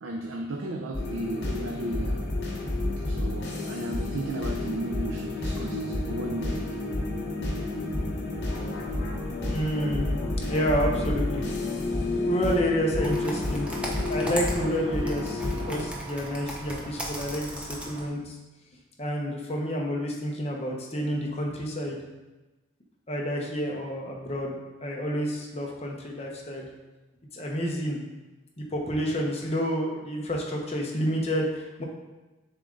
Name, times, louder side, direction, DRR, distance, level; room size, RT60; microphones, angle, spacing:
voice 1, 0.0-2.3 3.0-6.8, right 1 dB, 75° right, 2 dB, 0.5 m, -35 dB
sound 1, 0.9-15.9, left 2 dB, 55° left, 1.1 m, -30 dB
voice 2, 9.5-10.2 10.5-11.4 12.2-13.7 14.1-18.3 19.0-22.0 23.1-24.5 24.8-26.7 27.3-28.0 28.6-31.8, equal, 30° left, -1 dB, 0.9 m, -29 dB
Computer keyboard, 13.0-18.1, right 1 dB, 5° right, 0.7 m, -37 dB
6.9 x 3.6 x 3.8 m, 1.1 s
head